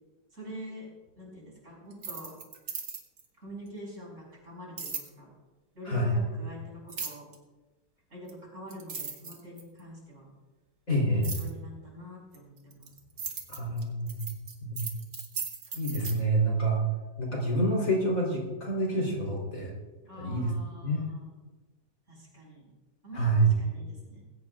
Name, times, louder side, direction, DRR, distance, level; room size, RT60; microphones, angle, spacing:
voice 1, 0.3-0.9 1.2-2.4 3.4-5.3 5.7-7.3 8.1-10.3 10.9-12.9 15.6-16.3 20.0-21.3 22.1-22.7 23.0-23.2 23.6-24.2, equal, 40° right, -3 dB, 5.7 m, -45 dB
sound 1, 1.9-3.3 4.8-5.1 6.9-7.4 8.3-8.4 8.7-9.8 11.2-11.5 12.3-16.2, right 5 dB, 70° right, 2.3 m, -37 dB
voice 2, 5.8-6.1 10.9-11.4 13.5-14.2 14.6-14.9 15.7-16.8 17.2-19.7 20.2-20.5 20.8-21.0 23.1-23.5, right 1 dB, 50° left, -2 dB, 4.2 m, -27 dB
20.5 x 17.0 x 2.5 m, 1.2 s
omnidirectional pair, 1.9 m